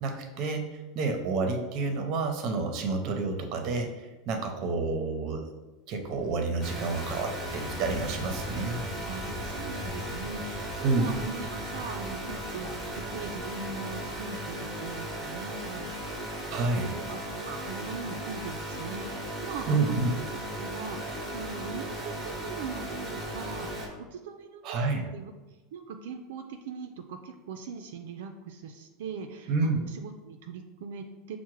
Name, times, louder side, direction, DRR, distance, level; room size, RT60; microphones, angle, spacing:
voice 1, 0.0-5.4 5.9-8.8 10.8-11.2 16.5-16.9 19.7-20.1 24.6-25.0 29.5-29.8, right 3 dB, 45° right, 5 dB, 0.6 m, -29 dB
sound 1, 6.0-13.5, left 1 dB, 15° left, 0.4 m, -43 dB
sound 2, 6.6-23.9, right 1 dB, 10° right, 0.8 m, -37 dB
voice 2, 9.1-16.3 16.6-25.3 25.7-31.4, right 5 dB, 90° right, 5 dB, 0.3 m, -41 dB
5.7 x 2.0 x 3.1 m, 1.1 s
supercardioid pair, 155°, 0 cm